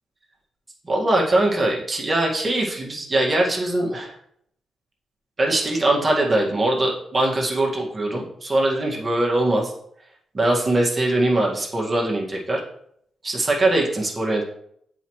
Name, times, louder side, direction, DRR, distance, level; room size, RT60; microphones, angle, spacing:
voice 1, 0.9-4.1 5.4-9.7 10.3-12.6 13.2-14.4, right 1 dB, 35° right, -2 dB, 1.7 m, -21 dB
7.1 x 5.0 x 3.1 m, 0.69 s
supercardioid pair, 60°, 0 cm